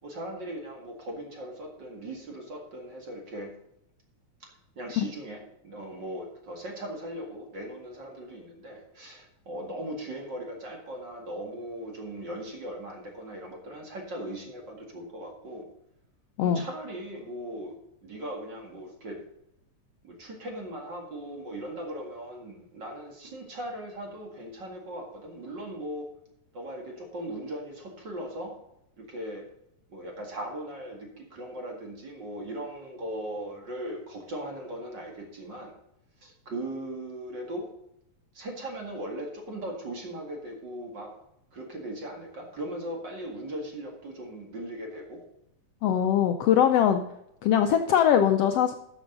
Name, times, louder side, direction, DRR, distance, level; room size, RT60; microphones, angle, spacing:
voice 1, 0.0-3.5 4.4-15.7 16.5-19.2 20.0-26.1 26.5-28.6 29.0-29.5 29.9-35.7 36.2-37.7 38.3-41.1 41.5-45.2, right 1 dB, 40° right, 1 dB, 2.3 m, -38 dB
voice 2, 45.8-47.0 47.4-48.7, left 9 dB, 90° left, 6 dB, 1.4 m, -22 dB
13.0 x 7.3 x 3.9 m, 0.80 s
omnidirectional pair, 3.5 m